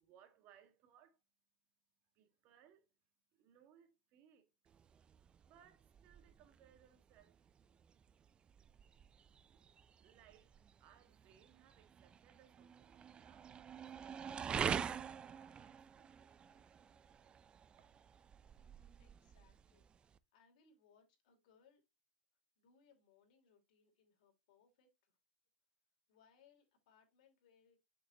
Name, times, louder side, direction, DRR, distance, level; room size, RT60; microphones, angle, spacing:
voice 1, 0.0-5.0 5.3-7.6 8.4-8.9 9.5-14.9 15.4-16.8 17.2-17.4 17.8-18.2, right 9 dB, 45° right, 1.7 m, -69 dB
sound 1, 4.7-20.2, right 7 dB, 20° right, 0.4 m, -46 dB
voice 2, 19.0-21.8 22.6-25.2 26.1-27.8, left 6 dB, 70° left, 2.8 m, -71 dB
6.7 x 6.2 x 2.9 m
supercardioid pair, 120°, 4 cm